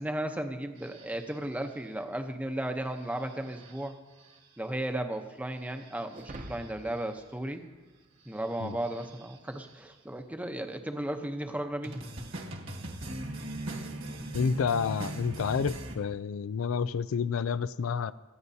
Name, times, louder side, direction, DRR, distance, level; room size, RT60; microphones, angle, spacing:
voice 1, 0.0-4.0 4.6-7.6 8.2-12.0, right 1 dB, 5° right, 5 dB, 0.8 m, -35 dB
sound 1, 0.8-1.7 3.0-3.9 4.2-4.4 5.6-7.1 8.3-9.7 11.8-16.0, right 1 dB, 70° right, 1.5 m, -41 dB
sound 2, 6.1-8.7, right 1 dB, 40° right, 0.9 m, -47 dB
voice 2, 14.3-18.1, left 6 dB, 85° left, 16 dB, 0.4 m, -29 dB
26.0 x 9.4 x 2.8 m, 1.3 s
head